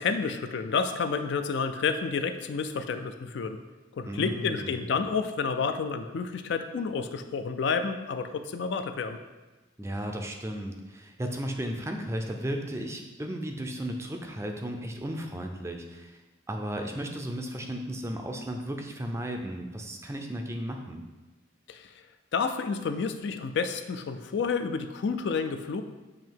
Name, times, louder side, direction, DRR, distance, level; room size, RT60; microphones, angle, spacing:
voice 1, 0.0-3.6 3.9-9.2 21.7-22.0 22.3-25.8, left 5 dB, 60° left, 8 dB, 0.3 m, -30 dB
voice 2, 4.1-4.9 9.8-16.2 16.5-21.0, equal, 15° right, 3 dB, 0.4 m, -35 dB
7.4 x 2.8 x 4.5 m, 1.2 s
head